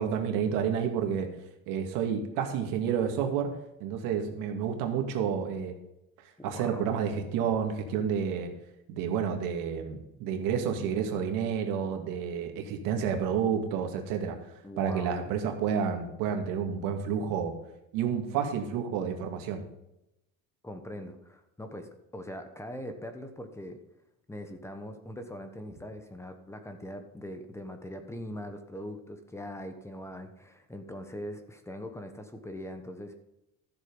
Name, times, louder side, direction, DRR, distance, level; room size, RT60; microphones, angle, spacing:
voice 1, 0.0-1.3 1.7-3.5 3.8-5.8 6.4-8.5 8.9-14.4 14.8-17.5 17.9-19.6, right 7 dB, 80° right, 4 dB, 2.2 m, -30 dB
voice 2, 6.4-7.0 14.6-15.2 20.6-23.8 24.3-33.1, left 1 dB, 10° left, 7 dB, 1.1 m, -41 dB
13.5 x 7.5 x 5.4 m, 0.87 s
cardioid pair, 140°, 32 cm